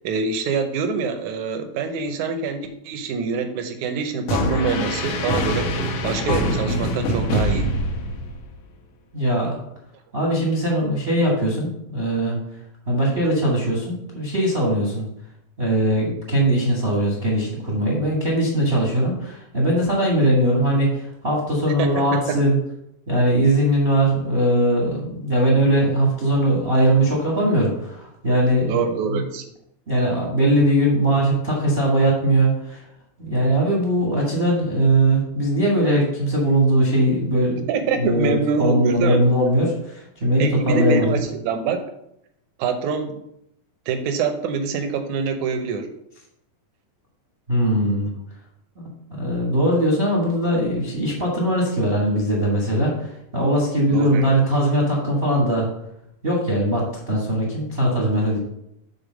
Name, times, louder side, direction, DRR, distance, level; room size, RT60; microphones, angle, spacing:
voice 1, 0.0-7.7 21.8-22.4 28.7-29.5 37.7-39.3 40.4-41.8 42.6-43.2 43.9-45.9 53.9-54.3, right 5 dB, 75° right, 7 dB, 1.8 m, -25 dB
sound 1, 4.3-8.6, equal, 65° left, 2.1 m, -24 dB
voice 2, 9.1-9.6 10.1-12.4 12.9-15.0 15.6-22.6 23.1-28.7 29.1-29.2 29.9-32.8 33.2-37.7 38.0-41.2 47.5-48.1 48.8-48.9 49.2-55.7 56.2-58.4, right 1 dB, 35° right, -3 dB, 0.8 m, -20 dB
6.8 x 4.4 x 6.2 m, 0.77 s
omnidirectional pair, 4.0 m